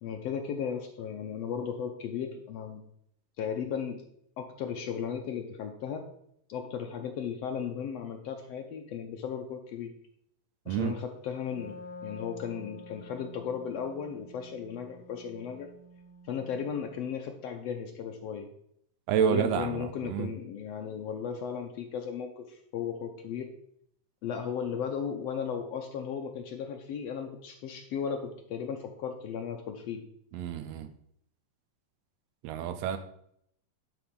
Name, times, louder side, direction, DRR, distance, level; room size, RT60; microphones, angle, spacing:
voice 1, 0.0-2.8 3.4-4.0 4.4-6.0 6.5-9.9 10.7-15.7 16.3-18.5 19.2-23.5 24.2-30.0, left 7 dB, 85° left, 4 dB, 1.4 m, -36 dB
Wind instrument woodwind instrument, 11.3-17.0, left 2 dB, 65° left, 3.8 m, -49 dB
voice 2, 19.1-20.3 30.3-30.9 32.4-33.0, right 8 dB, 85° right, 9 dB, 1.5 m, -29 dB
11.0 x 4.2 x 5.3 m, 0.72 s
omnidirectional pair, 3.8 m